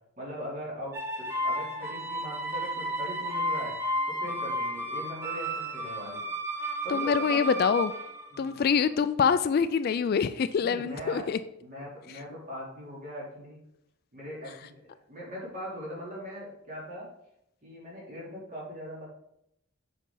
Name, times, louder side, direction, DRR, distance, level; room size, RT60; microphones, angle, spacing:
voice 1, 0.2-1.0 1.4-3.8 4.1-6.2 6.8-7.6 8.3-8.6 10.6-11.3 11.6-13.6 14.1-14.7 15.1-17.1 17.6-19.1, equal, 40° right, -5 dB, 3.0 m, -40 dB
sound 1, 0.9-8.9, right 1 dB, 10° right, 0.9 m, -33 dB
voice 2, 6.9-7.9 8.4-11.4, left 6 dB, 50° left, 13 dB, 0.3 m, -25 dB
7.4 x 5.3 x 3.8 m, 0.77 s
head